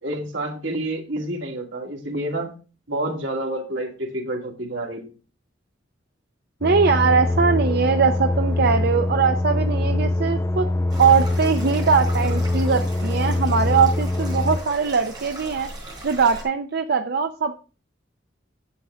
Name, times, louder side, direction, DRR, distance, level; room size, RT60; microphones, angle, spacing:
voice 1, 0.0-2.5 2.9-5.1, right 1 dB, 85° right, 0 dB, 2.3 m, -28 dB
sound 1, 6.6-14.6, left 2 dB, 15° left, 0.4 m, -23 dB
voice 2, 6.6-10.7 11.0-15.7 16.0-17.5, right 5 dB, 60° right, 6 dB, 0.5 m, -21 dB
sound 2, 10.9-16.4, right 2 dB, 25° right, 4.0 m, -39 dB
9.8 x 7.6 x 3.4 m, 0.35 s
head